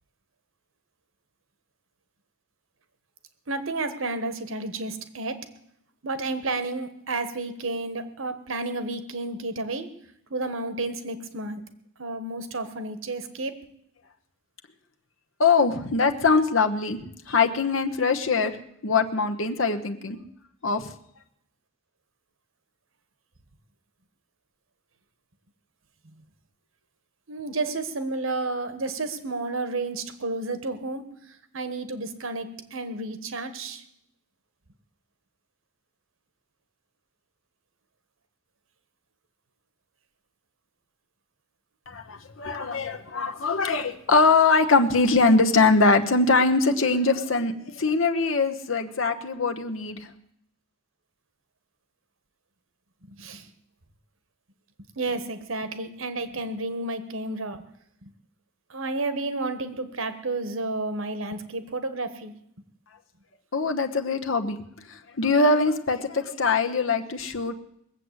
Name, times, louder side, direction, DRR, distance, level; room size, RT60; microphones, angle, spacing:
voice 1, 3.5-5.5 6.0-9.9 10.3-11.6 12.0-13.6 27.3-31.1 31.5-33.8 53.1-53.5 55.0-57.7 58.0-58.1 58.7-62.3, right 2 dB, 85° right, 11 dB, 1.4 m, -31 dB
voice 2, 15.4-17.0 17.3-18.6 18.8-20.2 20.6-20.9 41.9-50.0 63.5-64.6 64.9-67.5, left 4 dB, 75° left, 6 dB, 1.1 m, -22 dB
20.5 x 7.9 x 8.1 m, 0.75 s
head